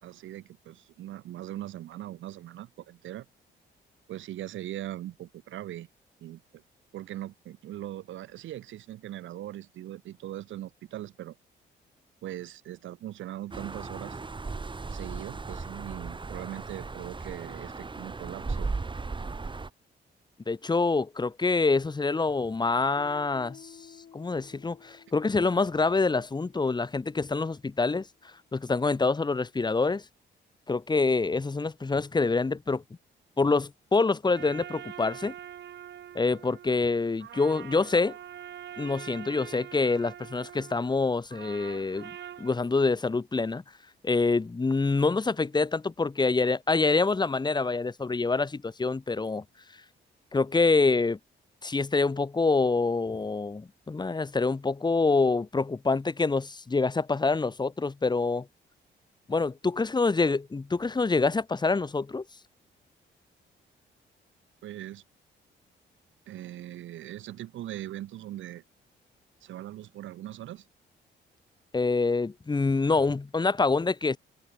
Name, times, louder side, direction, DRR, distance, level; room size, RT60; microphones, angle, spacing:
voice 1, 0.0-3.3 4.1-5.9 6.2-6.6 6.9-11.4 12.2-14.2 14.9-18.7 64.6-65.0 66.3-68.6 69.4-70.7, right 13 dB, 85° right, 3.5 m, -40 dB
sound 1, 13.5-19.7, right 3 dB, 25° right, 2.2 m, -36 dB
voice 2, 20.5-23.7 24.1-28.1 28.5-30.0 30.7-32.8 33.4-35.3 36.1-38.2 38.8-42.1 42.4-43.6 44.0-49.4 50.3-51.2 51.6-58.5 59.3-62.2 71.7-74.2, left 3 dB, 20° left, 1.4 m, -26 dB
Guitar, 23.3-27.6, left 8 dB, 60° left, 7.3 m, -54 dB
sound 2, 34.4-42.6, right 10 dB, 65° right, 1.7 m, -44 dB
cardioid pair, 85°, 19 cm